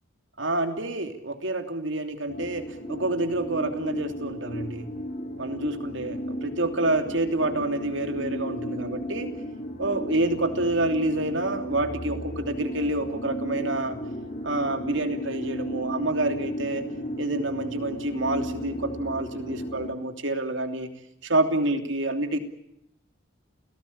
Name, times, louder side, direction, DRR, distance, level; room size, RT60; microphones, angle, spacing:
voice 1, 0.4-4.9 5.4-9.3 9.8-14.0 14.4-16.8 17.2-20.9 21.2-22.4, right 2 dB, 65° right, 6 dB, 3.0 m, -28 dB
sound 1, 2.3-19.9, equal, 40° left, 7.6 m, -34 dB
29.5 x 18.0 x 8.7 m, 0.78 s
head